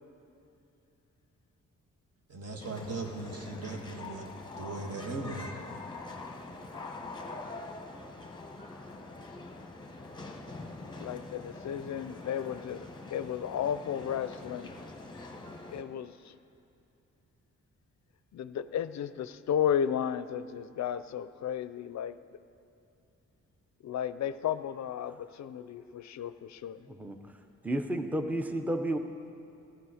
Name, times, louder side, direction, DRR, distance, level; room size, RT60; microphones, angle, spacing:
voice 1, 2.3-4.3 4.6-5.5, right 3 dB, 55° right, 2 dB, 1.6 m, -38 dB
sound 1, 2.6-15.8, left 2 dB, 15° left, 1.1 m, -44 dB
voice 2, 11.0-14.7 15.7-16.3 18.3-22.2 23.8-26.9, left 9 dB, 65° left, 13 dB, 0.5 m, -33 dB
voice 3, 26.9-27.3 27.6-29.0, right 1 dB, 5° right, 6 dB, 0.7 m, -32 dB
15.5 x 11.5 x 4.9 m, 2.7 s
cardioid pair, 95°, 30 cm